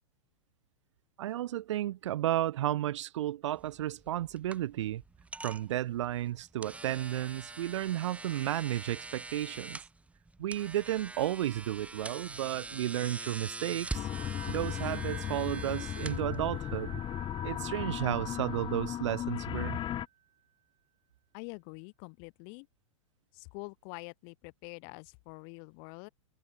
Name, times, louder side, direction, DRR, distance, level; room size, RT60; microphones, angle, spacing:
voice 1, 1.2-5.0 5.4-9.8 10.4-14.1 14.5-17.0 17.4-19.8, right 13 dB, 60° right, 1.1 m, -33 dB
sound 1, 3.6-16.8, right 3 dB, 5° right, 1.9 m, -44 dB
sound 2, 13.6-20.1, right 11 dB, 30° right, 2.6 m, -50 dB
sound 3, 13.9-20.1, left 11 dB, 30° left, 3.4 m, -36 dB
voice 2, 21.3-22.7 23.3-26.1, left 40 dB or more, 45° left, 6.5 m, -46 dB
figure-of-eight pair, 100°, 17 cm